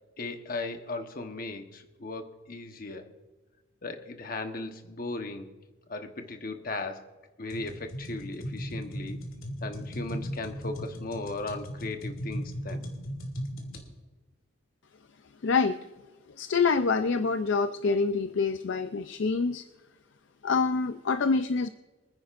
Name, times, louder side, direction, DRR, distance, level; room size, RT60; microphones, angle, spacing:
voice 1, 0.2-3.1 3.8-5.5 5.9-7.1 7.4-9.2 9.6-12.9, left 2 dB, 40° left, 6 dB, 1.1 m, -37 dB
sound 1, 7.5-13.8, equal, 75° left, 2.5 m, -37 dB
voice 2, 15.4-15.8 16.4-19.6 20.4-21.7, left 4 dB, 55° left, 10 dB, 0.4 m, -26 dB
25.5 x 10.0 x 2.5 m, 1.3 s
head